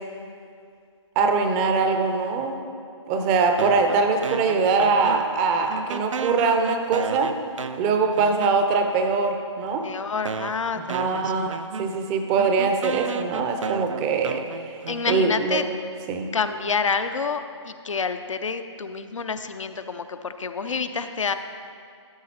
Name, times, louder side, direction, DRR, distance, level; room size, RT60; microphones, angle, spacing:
voice 1, 1.2-2.6 3.1-7.3 7.8-9.8 10.8-14.8 15.1-15.6 16.1-16.3 20.7-20.8, right 4 dB, 15° right, 5 dB, 0.5 m, -23 dB
sound 1, 3.6-5.4 5.7-8.9 9.7-9.8 10.3-15.7, right 5 dB, 85° right, 0.5 m, -34 dB
voice 2, 9.8-11.4 14.9-15.6 16.3-21.3, left 5 dB, 85° left, 9 dB, 0.6 m, -28 dB
12.5 x 5.9 x 4.2 m, 2.3 s
hypercardioid pair, 155°, 16 cm